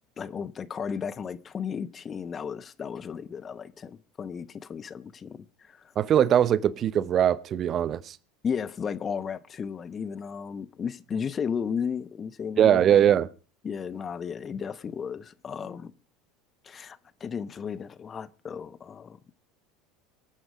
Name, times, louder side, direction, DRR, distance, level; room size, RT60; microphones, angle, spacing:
voice 1, 0.2-5.9 8.4-12.8 13.6-15.9 16.6-19.2, left 6 dB, 30° left, 0.9 m, -34 dB
voice 2, 6.0-8.2 12.6-13.3, right 10 dB, 40° right, 0.8 m, -21 dB
23.5 x 9.1 x 5.0 m
hypercardioid pair, 75°, 0 cm